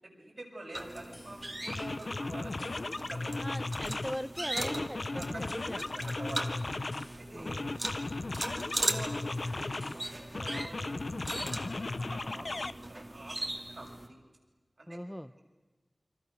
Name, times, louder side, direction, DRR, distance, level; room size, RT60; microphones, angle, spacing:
voice 1, 0.0-3.5 5.1-5.5 5.8-6.7 7.2-7.7 8.4-14.2 14.8-14.9, right 1 dB, 65° right, -1 dB, 7.2 m, -47 dB
sound 1, 0.8-14.1, right 1 dB, 25° right, 2.3 m, -39 dB
sound 2, 1.1-1.3 1.7-4.2 4.6-7.1 7.5-10.0 10.3-12.7, left 2 dB, 60° left, 0.8 m, -36 dB
voice 2, 3.4-6.1 7.3-7.7 14.9-15.3, equal, 5° left, 11 dB, 0.8 m, -40 dB
29.5 x 24.5 x 6.6 m, 1.3 s
wide cardioid pair, 55°, 0 cm